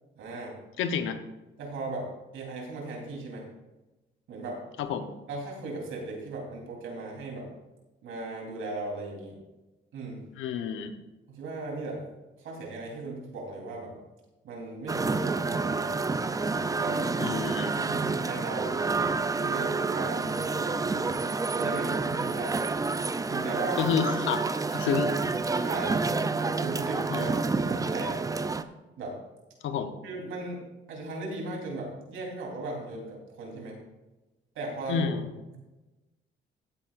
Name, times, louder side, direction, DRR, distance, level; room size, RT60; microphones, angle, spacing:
voice 1, 0.2-0.5 1.6-3.5 4.3-4.6 5.3-7.5 8.0-9.4 9.9-10.3 11.3-12.1 12.4-13.9 14.4-15.9 16.8-17.1 17.7-18.8 19.4-20.8 21.5-22.6 23.2-23.8 25.5-26.0 26.3-27.4 27.6-28.2 29.0-29.2 30.0-30.6 30.9-33.8 34.6-35.2 35.5-35.6, right 2 dB, 80° right, -1 dB, 3.6 m, -37 dB
voice 2, 0.8-1.2 4.8-5.1 10.4-10.9 17.2-17.8 23.8-25.1 27.1-27.3 29.6-29.9 34.9-35.2, left 7 dB, 85° left, 9 dB, 1.0 m, -29 dB
sound 1, 14.9-28.6, right 3 dB, 15° right, 0.5 m, -29 dB
15.0 x 8.9 x 2.5 m, 1.1 s
cardioid pair, 90°, 20 cm